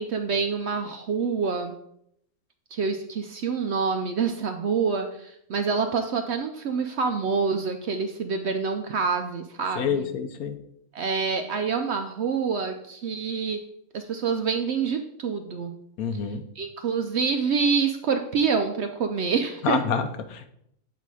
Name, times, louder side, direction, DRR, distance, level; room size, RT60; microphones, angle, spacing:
voice 1, 0.0-1.7 2.7-10.1 10.9-13.6 13.9-15.7 16.6-19.8, right 5 dB, 65° right, 6 dB, 0.7 m, -27 dB
voice 2, 9.8-10.6 16.0-16.4 19.6-20.5, left 6 dB, 80° left, 9 dB, 1.1 m, -27 dB
8.2 x 4.0 x 4.7 m, 0.74 s
omnidirectional pair, 1.5 m